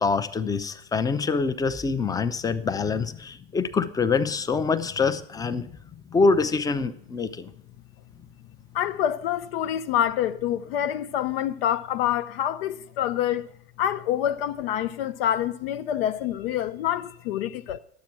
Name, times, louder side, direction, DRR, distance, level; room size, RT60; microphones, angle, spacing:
voice 1, 0.0-5.7 6.1-7.5, left 4 dB, 10° left, 0.5 m, -25 dB
voice 2, 8.7-13.5 13.8-17.8, left 11 dB, 65° left, 0.5 m, -26 dB
10.5 x 7.5 x 5.9 m
hypercardioid pair, 105°, 32 cm